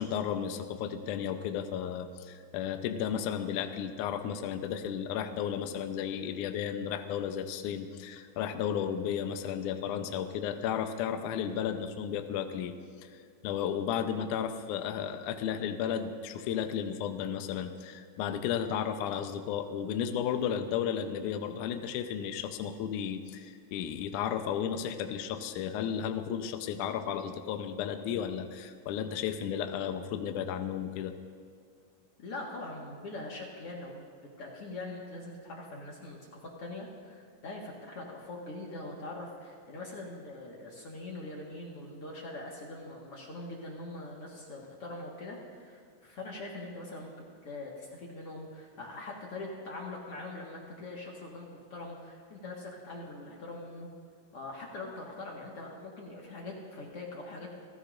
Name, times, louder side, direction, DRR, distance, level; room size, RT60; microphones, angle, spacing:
voice 1, 0.0-12.7 13.0-13.1 13.4-31.1, left 8 dB, 75° left, 6 dB, 1.9 m, -33 dB
voice 2, 32.2-34.1 34.4-47.1 47.4-53.9 54.3-57.5, left 2 dB, 50° left, -2 dB, 2.0 m, -42 dB
30.0 x 15.0 x 2.6 m, 2.2 s
omnidirectional pair, 4.5 m